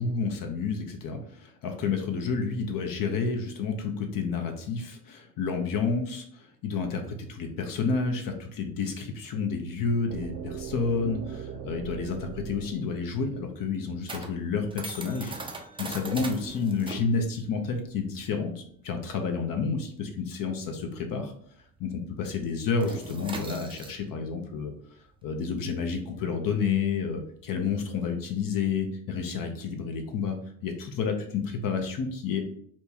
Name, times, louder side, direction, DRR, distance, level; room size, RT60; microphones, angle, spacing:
voice 1, 0.0-15.3 15.8-21.3 21.8-24.7 25.2-30.4 30.6-32.4, left 5 dB, 50° left, 4 dB, 0.7 m, -30 dB
sound 1, 10.1-14.0, right 8 dB, 55° right, 0.8 m, -40 dB
sound 2, 12.6-21.5 21.8-22.0 22.3-28.1, right 2 dB, 10° right, 0.5 m, -42 dB
4.4 x 2.3 x 2.8 m, 0.64 s
supercardioid pair, 75°, 45 cm